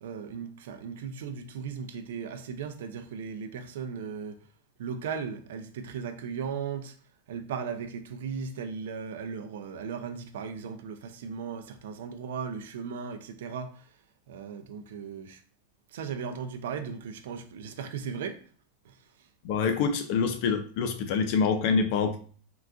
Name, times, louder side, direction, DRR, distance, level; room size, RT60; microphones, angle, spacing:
voice 1, 0.0-4.4 4.8-6.9 7.3-13.7 14.3-15.4 15.9-18.4 18.9-19.0, right 6 dB, 70° right, 0.4 m, -37 dB
voice 2, 19.4-22.2, left 5 dB, 40° left, 0.4 m, -26 dB
3.7 x 2.4 x 2.3 m
supercardioid pair, 175°, 0 cm